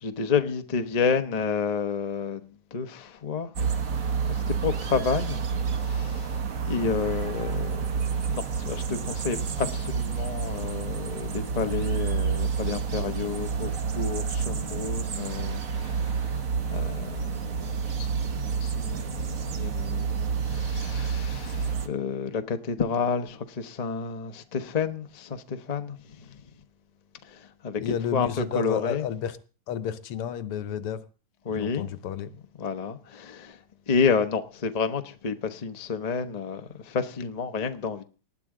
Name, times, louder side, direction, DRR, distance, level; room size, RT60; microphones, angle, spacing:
voice 1, 0.0-3.5 4.2-5.4 5.7-7.9 8.3-26.4 27.2-29.1 31.4-31.9 32.6-33.6 33.9-38.0, left 5 dB, 45° left, 0.5 m, -30 dB
sound 1, 3.6-21.9, right 6 dB, 45° right, 1.3 m, -29 dB
voice 2, 27.8-29.4 29.7-31.0 31.5-32.3, left 9 dB, 85° left, 1.9 m, -31 dB
19.0 x 11.0 x 3.8 m
omnidirectional pair, 2.4 m